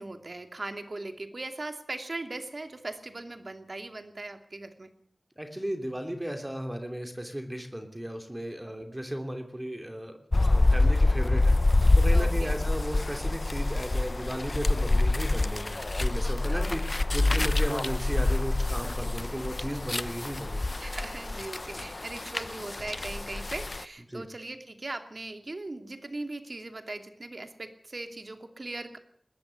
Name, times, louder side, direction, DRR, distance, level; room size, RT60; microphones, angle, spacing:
voice 1, 0.0-4.9 12.1-12.5 16.5-16.7 17.2-17.4 20.8-29.0, right 2 dB, 60° right, 7 dB, 2.7 m, -39 dB
voice 2, 5.4-20.6 24.1-24.3, equal, 20° right, 5 dB, 2.9 m, -35 dB
sound 1, 10.3-23.8, left 2 dB, 50° left, 0.8 m, -26 dB
21.0 x 13.5 x 9.8 m, 0.65 s
wide cardioid pair, 60°, 0 cm